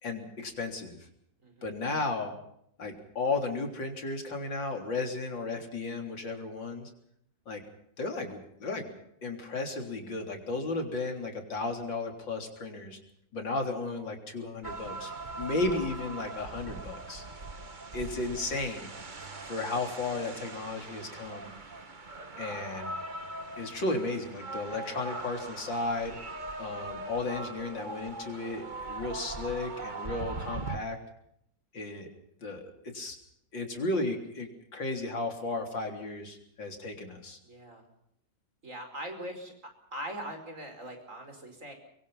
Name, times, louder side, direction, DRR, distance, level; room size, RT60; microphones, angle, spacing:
voice 1, 0.0-1.0 1.6-2.4 2.8-6.9 7.5-7.6 8.0-8.9 9.2-13.0 13.3-17.2 17.9-18.9 19.5-21.5 22.4-22.9 23.6-26.2 26.6-31.0 31.7-32.1 32.4-33.2 33.5-37.4, left 3 dB, 90° left, 4 dB, 4.3 m, -34 dB
voice 2, 1.4-1.8 37.4-37.9 38.6-39.5 39.9-41.7, equal, 40° right, 5 dB, 5.3 m, -41 dB
sound 1, 14.6-30.8, right 2 dB, 25° right, 1.6 m, -41 dB
25.0 x 23.0 x 5.6 m, 0.73 s
omnidirectional pair, 2.0 m